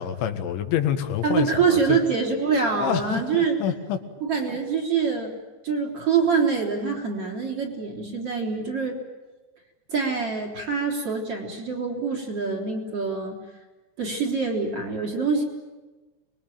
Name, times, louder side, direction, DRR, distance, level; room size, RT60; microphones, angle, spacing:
voice 1, 0.0-2.0 2.7-4.0, left 9 dB, 85° left, 6 dB, 4.1 m, -27 dB
voice 2, 1.2-3.6 4.2-5.3 5.6-9.0 9.9-13.4 14.0-15.4, right 5 dB, 35° right, 0 dB, 4.5 m, -25 dB
25.0 x 22.0 x 9.1 m, 1.2 s
omnidirectional pair, 5.2 m